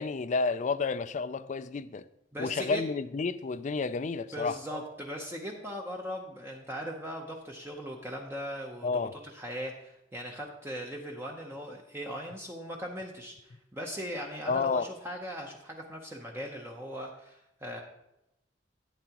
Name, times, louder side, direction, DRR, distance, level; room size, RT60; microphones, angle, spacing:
voice 1, 0.0-2.0 2.4-4.6 8.8-9.1 14.5-14.9, left 4 dB, 40° left, 0.3 m, -30 dB
voice 2, 2.3-2.8 4.3-17.8, equal, 15° right, 0.7 m, -39 dB
11.0 x 9.2 x 2.9 m
head